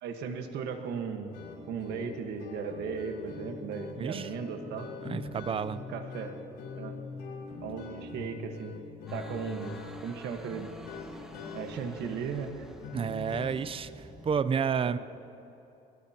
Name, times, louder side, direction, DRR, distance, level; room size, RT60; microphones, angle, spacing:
voice 1, 0.0-1.3 1.7-4.9 5.9-6.3 6.8-6.9 7.6-8.8 9.1-10.7 11.5-12.7 14.8-15.0, right 6 dB, 80° right, 6 dB, 1.5 m, -36 dB
sound 1, 1.3-13.5, left 3 dB, 85° left, 4.3 m, -43 dB
voice 2, 4.0-4.3 5.0-5.8 12.9-13.9 14.2-15.0, right 6 dB, 35° right, 14 dB, 0.6 m, -30 dB
sound 2, 9.1-14.4, equal, 5° right, 1.6 m, -49 dB
22.0 x 21.5 x 2.9 m, 2.9 s
cardioid pair, 110°, 17 cm